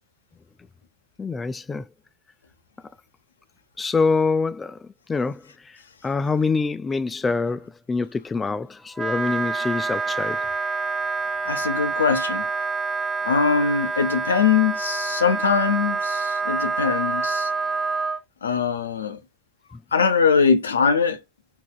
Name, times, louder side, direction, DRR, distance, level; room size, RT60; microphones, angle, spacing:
voice 1, 1.2-1.9 3.8-10.5, left 4 dB, 20° left, 0.3 m, -25 dB
Wind instrument woodwind instrument, 8.9-18.2, right 4 dB, 20° right, 0.7 m, -27 dB
voice 2, 11.4-12.5 13.2-17.5 18.4-19.2 19.9-21.2, left 6 dB, 75° left, 0.6 m, -22 dB
4.7 x 2.9 x 2.2 m
figure-of-eight pair, 70°, 0 cm